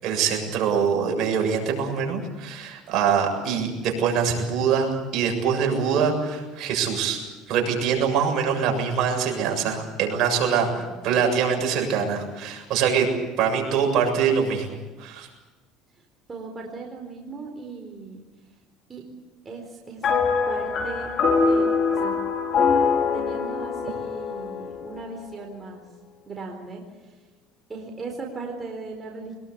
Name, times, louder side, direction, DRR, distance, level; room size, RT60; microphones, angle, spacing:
voice 1, 0.0-7.2 7.5-10.7 11.0-13.1 13.4-15.3, right 6 dB, 55° right, 2 dB, 7.3 m, -24 dB
voice 2, 10.7-11.1 16.0-18.2 18.9-19.0 19.4-20.2 20.5-21.1 21.4-22.1 23.1-25.8 26.3-27.2 27.7-29.4, right 3 dB, 20° right, 1 dB, 4.4 m, -38 dB
sound 1, 20.0-25.5, left 5 dB, 45° left, 4.4 m, -24 dB
24.0 x 21.5 x 8.5 m, 1.2 s
cardioid pair, 120°, 0 cm